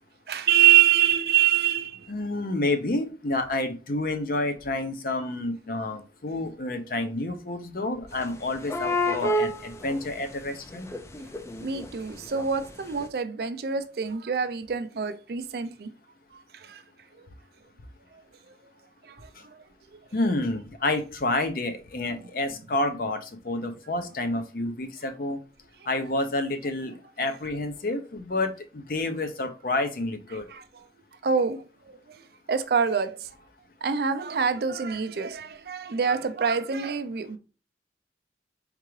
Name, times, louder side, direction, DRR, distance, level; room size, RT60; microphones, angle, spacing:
voice 1, 0.3-2.0 11.6-15.9 16.6-16.8 30.5-30.6 31.2-31.6 32.5-33.3 33.8-37.4, right 8 dB, 60° right, 0.4 m, -24 dB
voice 2, 2.1-10.9 19.4-19.5 20.1-25.4 25.9-30.5, left 2 dB, 50° left, 0.6 m, -29 dB
sound 1, 8.2-8.3 8.6-10.4 10.7-12.7 13.0-13.1, left 1 dB, 15° left, 0.3 m, -29 dB
4.7 x 3.7 x 3.1 m
head